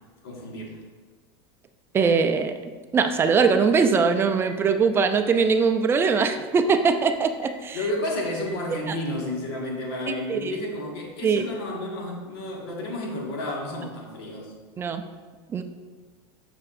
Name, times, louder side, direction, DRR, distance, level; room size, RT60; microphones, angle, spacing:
voice 1, 0.2-0.8 7.7-14.5, left 1 dB, 85° left, -1 dB, 1.7 m, -31 dB
voice 2, 1.9-2.5 2.9-7.8 8.9-9.0 10.3-10.6 11.2-11.5 14.8-15.0 15.5-15.6, right 5 dB, 20° right, 8 dB, 0.4 m, -21 dB
Telephone, 4.4-4.7 5.2-5.5 6.0-6.2 7.0-7.9 8.4-8.5, right 1 dB, 50° left, 1.4 m, -44 dB
7.3 x 6.0 x 2.5 m, 1.4 s
supercardioid pair, 145°, 13 cm